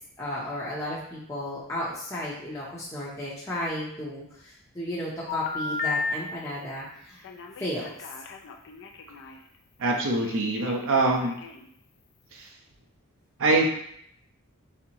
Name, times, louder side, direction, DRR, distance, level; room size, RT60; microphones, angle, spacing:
voice 1, 0.2-7.2 7.6-8.0, left 1 dB, 15° left, -7 dB, 0.7 m, -34 dB
Telephone, 5.3-6.1 7.2-9.4 10.2-11.7, left 4 dB, 55° left, 0.4 m, -34 dB
voice 2, 9.8-11.4 12.3-12.5 13.4-13.7, right 2 dB, 65° right, 1 dB, 0.7 m, -24 dB
4.2 x 3.5 x 2.9 m, 0.69 s
head